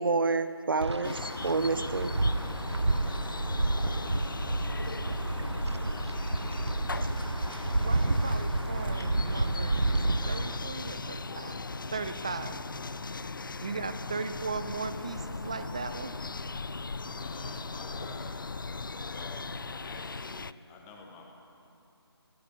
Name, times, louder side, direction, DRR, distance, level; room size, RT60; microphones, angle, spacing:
voice 1, 0.0-2.2 7.0-7.1, right 3 dB, 55° right, 12 dB, 0.9 m, -29 dB
Wind, 0.8-10.6, right 2 dB, 90° right, 0.7 m, -30 dB
sound 1, 1.0-20.5, left 4 dB, 50° left, 0.4 m, -39 dB
sound 2, 7.6-19.7, left 1 dB, 35° left, 3.1 m, -45 dB
voice 2, 7.8-11.6 11.9-12.6 13.6-16.1, right 4 dB, 15° right, 11 dB, 0.4 m, -37 dB
voice 3, 17.2-18.4 19.0-21.3, left 4 dB, 10° left, 1 dB, 1.5 m, -48 dB
21.0 x 16.5 x 8.2 m, 2.6 s
figure-of-eight pair, 155°, 14 cm